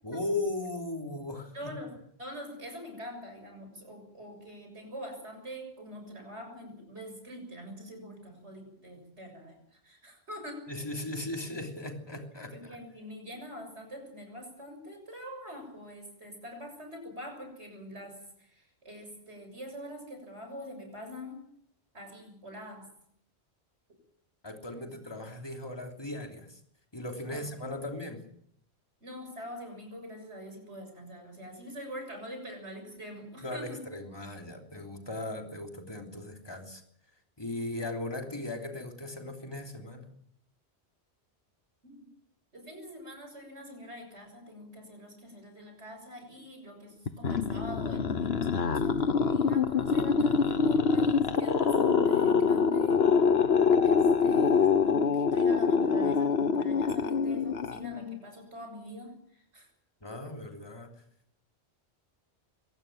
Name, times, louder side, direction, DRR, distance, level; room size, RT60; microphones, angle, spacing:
voice 1, 0.0-1.7 10.7-12.8 24.4-26.6 26.9-28.2 33.4-36.8 37.4-40.1 60.0-60.9, left 2 dB, 20° left, 3 dB, 3.3 m, -37 dB
voice 2, 1.5-1.9 2.2-10.7 12.5-21.4 21.9-22.9 27.3-27.5 29.0-33.8 41.8-42.1 42.5-53.1 53.8-59.7, equal, 80° right, 5 dB, 7.3 m, -44 dB
sound 1, 47.1-58.2, left 5 dB, 65° left, 1.4 m, -25 dB
24.0 x 18.5 x 7.5 m, 0.67 s
omnidirectional pair, 1.1 m